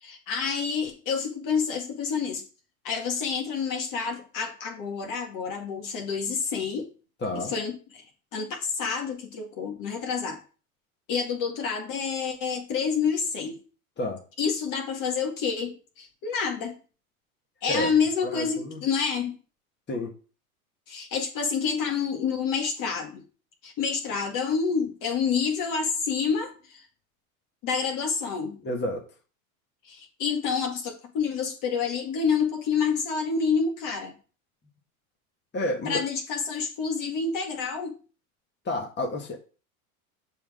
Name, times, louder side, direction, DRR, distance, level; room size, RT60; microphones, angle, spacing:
voice 1, 0.0-2.4 2.8-6.9 7.3-8.0 8.3-10.4 11.1-13.6 14.4-16.7 17.6-19.3 20.9-23.2 23.6-26.8 27.6-28.6 29.8-34.2 35.9-37.9, left 6 dB, 50° left, 2 dB, 2.1 m, -28 dB
voice 2, 7.2-7.5 14.0-14.2 17.7-17.9 18.2-18.8 19.9-20.2 28.6-29.0 35.5-36.0 38.7-39.4, left 1 dB, 25° left, 1 dB, 1.8 m, -30 dB
6.9 x 3.9 x 5.0 m, 0.36 s
hypercardioid pair, 90°, 42 cm